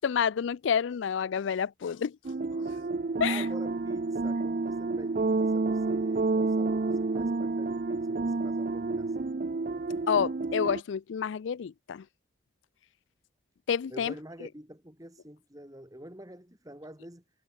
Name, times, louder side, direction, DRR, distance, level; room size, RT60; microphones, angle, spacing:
voice 1, 0.0-2.2 2.6-2.7 3.2-3.4 10.1-12.0 13.7-14.1, left 7 dB, 70° left, 0.4 m, -29 dB
sound 1, 2.2-10.8, right 3 dB, 45° right, 0.5 m, -29 dB
voice 2, 3.3-9.3 13.9-17.2, right 1 dB, 20° right, 3.2 m, -47 dB
head